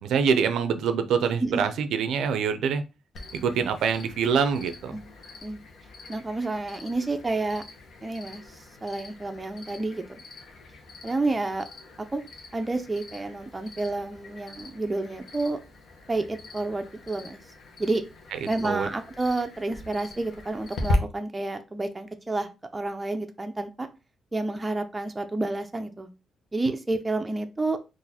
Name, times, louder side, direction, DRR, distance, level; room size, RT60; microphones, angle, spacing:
voice 1, 0.0-2.8 3.3-4.9 18.6-18.9, right 6 dB, 80° right, 0.4 m, -25 dB
Cricket, 3.1-20.9, left 2 dB, 65° left, 0.8 m, -41 dB
voice 2, 6.1-7.6 8.0-10.0 11.0-11.7 12.0-12.2 12.5-15.6 16.1-17.4 17.8-18.0 18.5-23.9 24.3-26.1 26.5-27.8, right 2 dB, 15° right, 0.5 m, -30 dB
3.8 x 2.5 x 2.8 m
cardioid pair, 120°, 0 cm